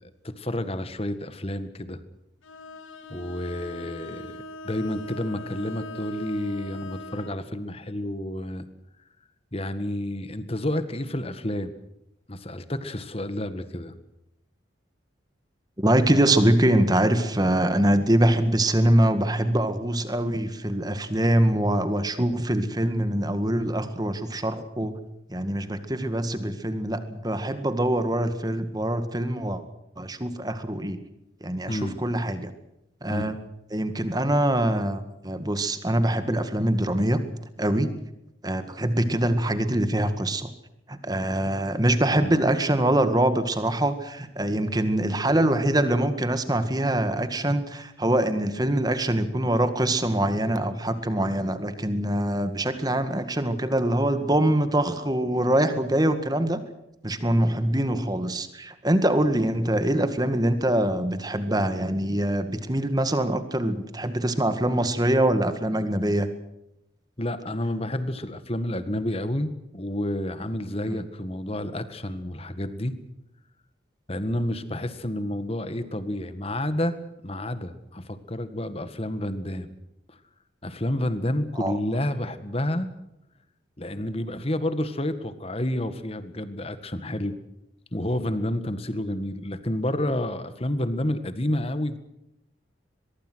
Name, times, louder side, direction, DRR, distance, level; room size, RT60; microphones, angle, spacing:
voice 1, 0.0-2.0 3.1-4.4 4.6-8.7 9.5-11.8 12.3-14.0 31.7-32.0 33.1-33.4 42.1-42.3 67.2-73.0 74.1-77.0 77.2-79.8 80.1-80.2 80.6-82.9 83.8-87.3 87.9-92.0, left 1 dB, 30° left, 11 dB, 1.8 m, -30 dB
Bowed string instrument, 2.4-7.4, left 1 dB, 85° left, 2.4 m, -41 dB
voice 2, 15.8-25.0 25.3-29.6 30.0-31.0 31.4-32.5 33.0-33.3 33.7-37.2 37.6-37.9 38.4-40.5 40.9-56.6 57.0-66.3 70.9-71.0 81.6-81.7, right 1 dB, 20° right, 10 dB, 1.9 m, -24 dB
23.0 x 22.5 x 6.3 m, 0.85 s
head